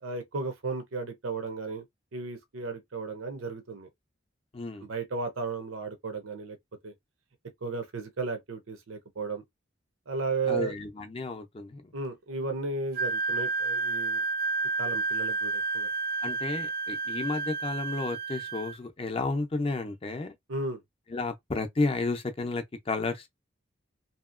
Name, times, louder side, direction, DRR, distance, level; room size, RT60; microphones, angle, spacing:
voice 1, 0.0-1.8 2.1-3.9 4.8-6.6 6.8-6.9 7.6-9.4 10.1-10.7 11.9-14.2 14.8-15.9 20.5-20.8, right 3 dB, 85° right, 0.6 m, -34 dB
voice 2, 4.5-4.9 10.5-11.9 16.2-20.3 21.1-23.3, left 3 dB, 30° left, 0.5 m, -32 dB
Wind instrument woodwind instrument, 12.9-18.8, right 4 dB, 50° right, 0.3 m, -30 dB
2.8 x 2.7 x 2.4 m
head